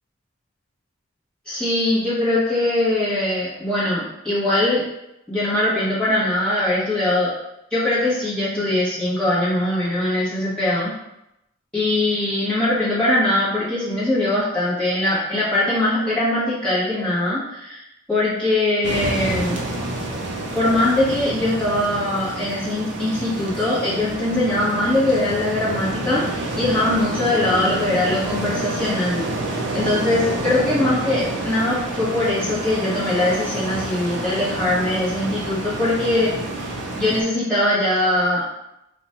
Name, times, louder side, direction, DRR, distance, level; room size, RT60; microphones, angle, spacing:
voice 1, 1.5-4.8 5.3-7.3 7.7-10.9 11.7-17.8 18.1-19.6 20.5-36.3 36.6-38.5, left 1 dB, 5° left, -11 dB, 1.3 m, -21 dB
sound 1, 18.8-37.2, right 1 dB, 55° right, 0.6 m, -28 dB
3.0 x 2.4 x 4.3 m, 0.85 s
head